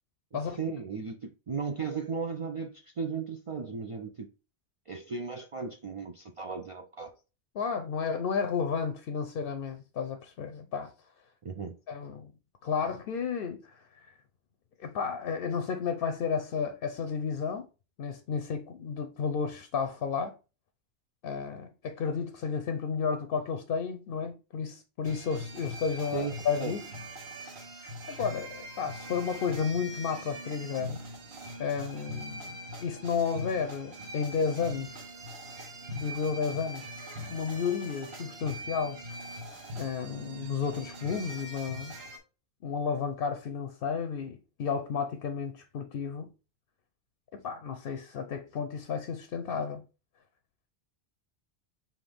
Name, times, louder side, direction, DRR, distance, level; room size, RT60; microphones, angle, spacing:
voice 1, 0.3-4.3 4.9-7.2 11.4-11.8 26.1-26.3 26.6-26.7, right 5 dB, 55° right, 0.3 m, -36 dB
voice 2, 7.5-10.9 11.9-12.3 12.6-13.9 14.8-17.7 18.0-20.4 21.2-26.8 28.1-31.1 31.6-34.9 35.9-36.9 37.3-39.0 39.8-42.0 42.6-46.3 47.3-49.8, left 6 dB, 65° left, 0.7 m, -32 dB
sound 1, 25.0-42.2, equal, 75° right, 1.4 m, -42 dB
5.7 x 2.6 x 3.4 m
omnidirectional pair, 1.1 m